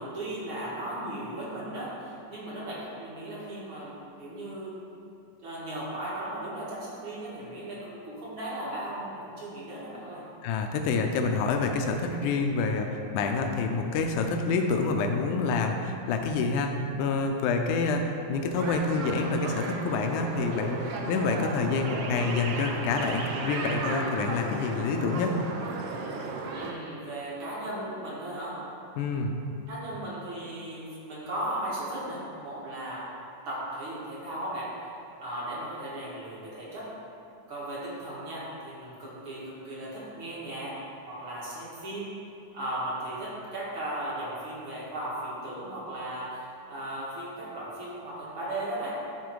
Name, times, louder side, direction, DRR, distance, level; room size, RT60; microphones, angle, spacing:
voice 1, 0.0-4.8 5.4-10.2 26.5-28.6 29.7-33.1 33.5-34.9 35.2-36.9 37.5-40.8 41.1-42.1 42.5-48.9, right 1 dB, 45° right, -7 dB, 2.3 m, -36 dB
voice 2, 10.4-25.4 29.0-29.3, left 4 dB, 85° left, 4 dB, 2.1 m, -27 dB
sound 1, 18.6-26.7, right 3 dB, 90° right, 1.3 m, -34 dB
11.5 x 4.1 x 4.7 m, 2.6 s
omnidirectional pair, 3.5 m